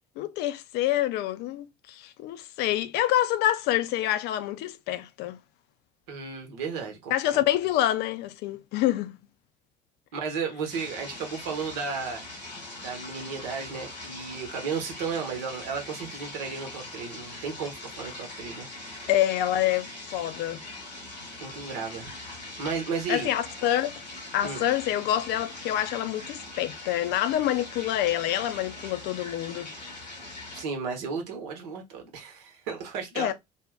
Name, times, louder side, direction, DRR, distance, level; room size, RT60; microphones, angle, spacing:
voice 1, 0.2-5.4 7.1-9.2 19.1-20.6 23.1-23.9 24.3-29.7 33.2-33.3, left 13 dB, 50° left, 0.4 m, -27 dB
voice 2, 6.1-7.4 10.1-12.3 12.8-19.1 21.4-22.1 22.6-23.3 24.4-24.6 30.5-33.3, right 5 dB, 65° right, 1.0 m, -34 dB
sound 1, 10.7-30.6, left 2 dB, 90° left, 0.8 m, -42 dB
2.5 x 2.1 x 3.4 m
figure-of-eight pair, 60°, 21 cm